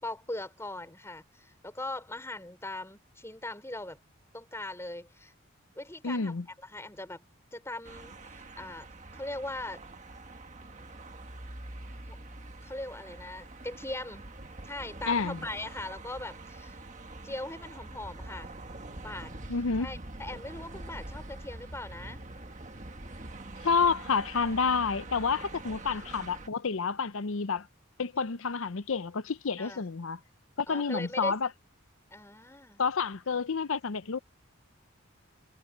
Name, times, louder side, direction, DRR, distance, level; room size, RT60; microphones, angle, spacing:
voice 1, 0.0-4.0 4.3-5.3 5.8-6.3 6.6-7.2 7.5-8.9 9.2-9.8 12.1-12.2 12.6-14.2 14.6-16.8 17.2-18.5 18.9-19.4 19.8-22.2 25.7-26.1 29.6-29.8 30.7-31.3 32.1-32.8, left 2 dB, 15° left, 5.4 m, -40 dB
voice 2, 6.0-6.5 15.1-15.4 19.5-19.9 23.6-27.7 28.0-30.2 30.6-31.5 32.8-34.2, left 5 dB, 75° left, 0.7 m, -29 dB
sound 1, 7.8-26.5, right 2 dB, 35° right, 1.6 m, -45 dB
head